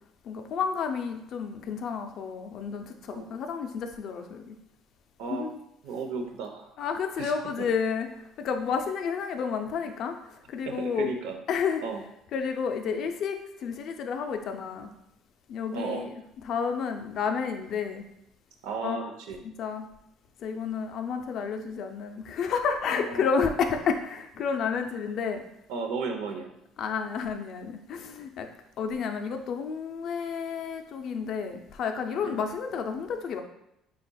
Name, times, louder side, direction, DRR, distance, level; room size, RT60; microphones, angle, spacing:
voice 1, 0.3-4.5 5.3-5.6 6.8-8.1 8.4-10.1 10.5-11.1 11.5-11.8 12.3-14.9 15.5-16.1 16.5-18.1 18.8-19.1 19.4-19.9 20.4-25.4 26.8-28.5 28.8-33.4, left 6 dB, 45° left, 6 dB, 0.4 m, -31 dB
voice 2, 5.8-6.7 7.2-7.7 10.7-11.4 11.8-12.0 15.7-16.1 18.6-19.4 22.9-23.3 25.7-26.5 32.2-32.4, right 4 dB, 85° right, 4 dB, 0.7 m, -34 dB
4.9 x 4.0 x 2.2 m, 0.82 s
cardioid pair, 180°, 0 cm